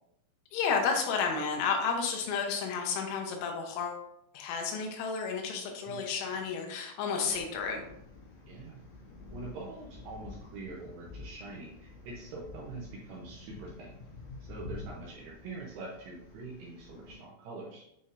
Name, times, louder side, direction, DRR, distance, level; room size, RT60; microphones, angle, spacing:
voice 1, 0.5-4.0 4.4-7.8, left 5 dB, 85° left, 2 dB, 3.6 m, -31 dB
sound 1, 7.2-17.2, left 3 dB, 65° left, 2.7 m, -49 dB
voice 2, 8.5-8.9 9.3-13.9 14.4-17.8, right 3 dB, 80° right, -3 dB, 2.3 m, -44 dB
9.2 x 4.0 x 2.6 m, 0.78 s
omnidirectional pair, 5.8 m